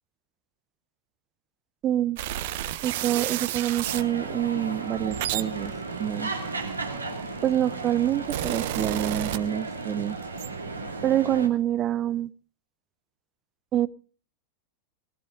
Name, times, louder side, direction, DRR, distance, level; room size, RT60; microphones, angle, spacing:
voice 1, 1.8-2.2 2.8-5.7 6.0-6.3 7.4-10.2 11.0-12.3 13.7-13.9, right 11 dB, 30° right, 21 dB, 0.7 m, -26 dB
sound 1, 2.2-4.1 4.8-7.2 7.9-9.9 10.2-10.5, right 13 dB, 50° right, 1.0 m, -31 dB
sound 2, 3.8-11.5, right 3 dB, 80° right, 2.5 m, -35 dB
19.5 x 15.5 x 3.8 m, 0.40 s
figure-of-eight pair, 90°, 0 cm